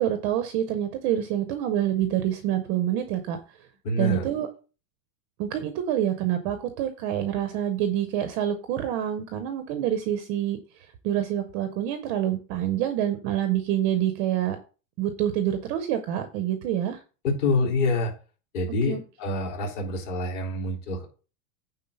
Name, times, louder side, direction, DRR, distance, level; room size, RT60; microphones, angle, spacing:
voice 1, 0.0-3.4 4.0-4.5 5.4-14.6 15.0-17.0 18.9-19.0, right 11 dB, 20° right, 8 dB, 0.4 m, -27 dB
voice 2, 3.8-4.2 17.2-18.1 18.5-21.1, left 2 dB, 45° left, 0 dB, 3.6 m, -26 dB
9.4 x 3.9 x 6.7 m, 0.35 s
supercardioid pair, 170°, 43 cm